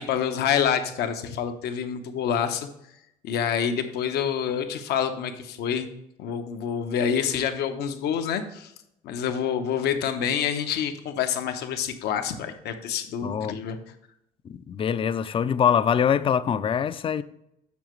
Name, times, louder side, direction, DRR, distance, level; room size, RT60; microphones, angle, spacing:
voice 1, 0.0-2.7 3.2-5.9 6.2-8.7 9.0-13.8, left 8 dB, 75° left, 0.8 m, -27 dB
voice 2, 13.2-13.6 14.5-17.2, left 8 dB, 30° left, 0.4 m, -24 dB
7.2 x 6.4 x 3.1 m
cardioid pair, 110°, 17 cm